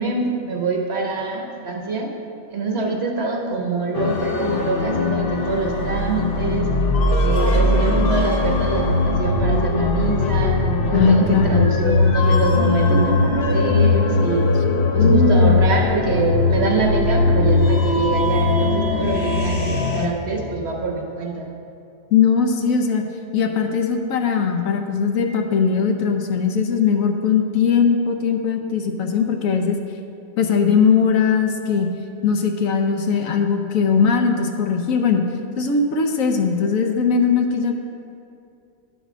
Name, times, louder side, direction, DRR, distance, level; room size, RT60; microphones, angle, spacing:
voice 1, 0.0-2.1 2.5-6.7 7.0-10.6 10.9-14.5 14.9-21.5, right 3 dB, 50° right, 1 dB, 1.0 m, -25 dB
sound 1, 3.9-20.1, left 3 dB, 50° left, 0.7 m, -19 dB
voice 2, 10.9-11.6 15.0-15.6 22.1-23.0 23.3-29.8 30.4-31.9 32.2-35.2 35.6-37.7, left 6 dB, 70° left, 4 dB, 1.0 m, -19 dB
10.0 x 4.1 x 6.1 m, 2.6 s
omnidirectional pair, 1.6 m